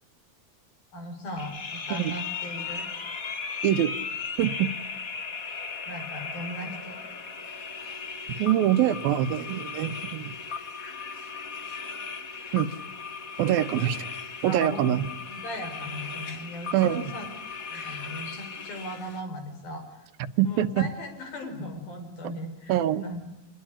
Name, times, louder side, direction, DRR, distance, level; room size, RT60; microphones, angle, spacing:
voice 1, 0.9-2.9 5.9-7.0 13.8-13.9 14.5-15.0 15.3-17.3 17.6-20.1 20.4-23.3, equal, 80° left, 5 dB, 7.0 m, -38 dB
sound 1, 1.4-19.2, left 5 dB, 50° left, 1.0 m, -37 dB
voice 2, 4.4-4.7 8.4-10.3 12.5-12.7 13.4-14.0 14.4-15.0 16.7-17.0 20.2-20.9 22.7-23.0, right 11 dB, 80° right, 12 dB, 2.9 m, -24 dB
27.0 x 20.5 x 10.0 m, 0.93 s
omnidirectional pair, 4.1 m